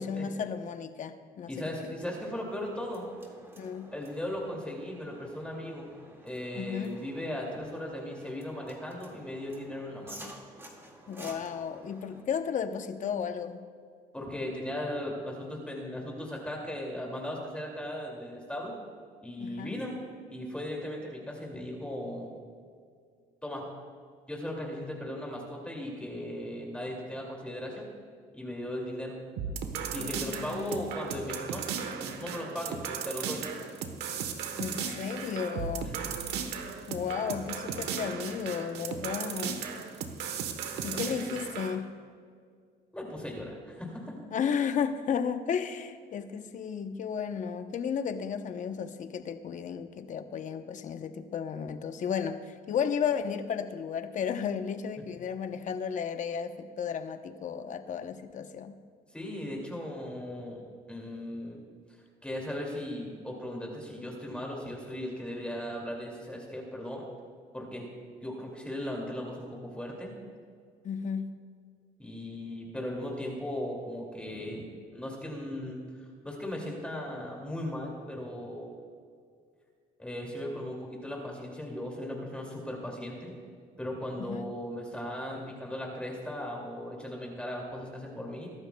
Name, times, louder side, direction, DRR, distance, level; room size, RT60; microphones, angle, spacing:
voice 1, 0.0-2.0 3.6-3.9 6.5-7.0 11.1-13.6 19.4-19.8 30.0-31.0 34.6-35.9 36.9-39.7 40.8-41.9 44.3-58.8 70.8-71.3 84.2-84.5, left 7 dB, 50° left, 8 dB, 0.9 m, -34 dB
voice 2, 1.5-3.1 3.9-5.9 6.2-10.3 14.1-18.7 19.2-20.0 20.3-22.3 23.4-23.7 24.3-27.9 28.3-29.2 29.9-33.4 35.8-36.2 40.7-41.4 42.9-44.1 59.1-60.6 60.9-61.6 62.2-67.0 67.5-67.9 68.2-70.1 72.0-74.7 74.9-78.7 80.0-83.3 83.8-88.5, left 1 dB, 5° left, -1 dB, 2.5 m, -37 dB
sound 1, 2.0-12.2, right 1 dB, 15° right, 2.0 m, -52 dB
sound 2, 29.4-41.8, right 7 dB, 85° right, 1.2 m, -36 dB
22.5 x 12.0 x 2.3 m, 2.1 s
cardioid pair, 110°, 17 cm